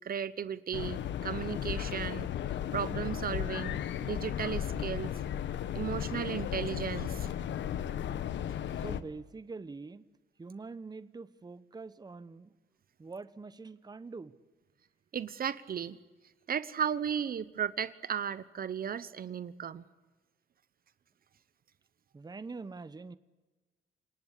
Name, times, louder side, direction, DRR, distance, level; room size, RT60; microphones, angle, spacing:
voice 1, 0.0-2.3 2.7-5.1 5.7-7.3 15.1-16.0 16.5-19.8, right 8 dB, 50° right, 16 dB, 1.0 m, -35 dB
sound 1, 0.7-9.0, left 10 dB, 70° left, 1.3 m, -35 dB
voice 2, 8.8-10.0 10.4-12.5 13.0-14.4 22.1-23.2, right 4 dB, 20° right, 15 dB, 1.1 m, -44 dB
28.5 x 19.0 x 8.4 m, 1.2 s
cardioid pair, 85°, 20 cm